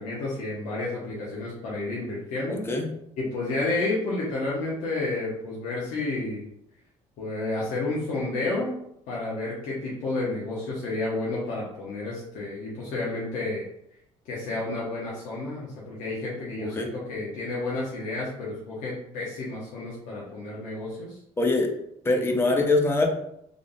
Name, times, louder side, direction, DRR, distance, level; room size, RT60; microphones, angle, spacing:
voice 1, 0.0-2.6 3.2-6.4 7.2-8.7 9.1-13.7 14.3-21.2, left 2 dB, 85° left, -6 dB, 1.0 m, -31 dB
voice 2, 2.5-2.9 16.6-16.9 21.4-21.7 22.0-23.1, left 2 dB, 20° left, 3 dB, 0.5 m, -23 dB
3.6 x 2.3 x 3.8 m, 0.76 s
cardioid pair, 150°, 13 cm